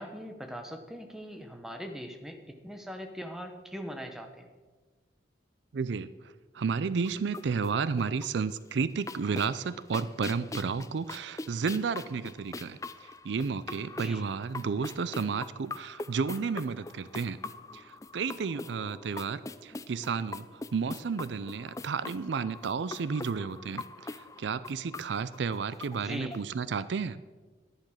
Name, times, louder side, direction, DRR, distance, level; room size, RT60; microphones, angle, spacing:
voice 1, 0.0-4.5 13.9-14.2 26.0-26.3, equal, ahead, 5 dB, 1.0 m, -41 dB
voice 2, 5.7-17.4 17.7-27.2, right 5 dB, 65° right, 16 dB, 0.4 m, -32 dB
sound 1, 7.0-8.5 8.8-26.4, left 3 dB, 15° left, 0.3 m, -43 dB
11.0 x 10.5 x 6.4 m, 1.3 s
head